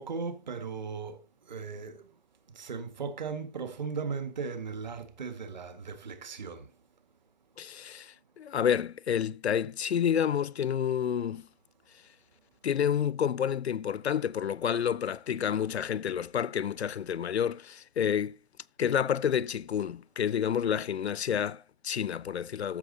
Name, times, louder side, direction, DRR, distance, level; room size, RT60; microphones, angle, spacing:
voice 1, 0.0-2.1 2.5-6.7, right 5 dB, 45° right, 1.7 m, -37 dB
voice 2, 7.6-11.5 12.6-18.4 18.8-22.8, left 8 dB, 80° left, 0.6 m, -29 dB
14.0 x 6.3 x 4.0 m
hypercardioid pair, 170°, 32 cm